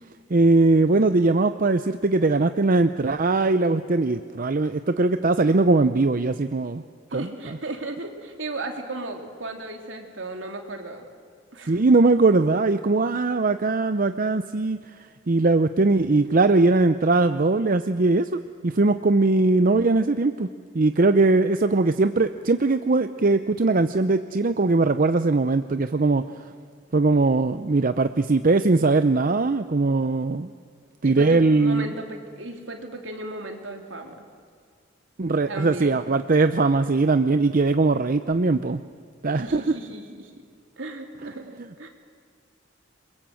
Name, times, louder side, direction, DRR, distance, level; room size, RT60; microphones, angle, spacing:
voice 1, 0.3-6.8 7.1-7.2 11.7-14.8 15.3-20.5 20.7-26.2 26.9-30.5 31.0-31.9 35.2-38.8 39.2-39.7, right 3 dB, 45° right, 10 dB, 0.6 m, -20 dB
voice 2, 7.1-11.0 11.5-11.8 31.0-34.2 35.5-36.0 39.3-40.3 40.8-41.9, right 2 dB, 70° right, 3 dB, 3.2 m, -35 dB
29.0 x 22.5 x 7.7 m, 2.1 s
head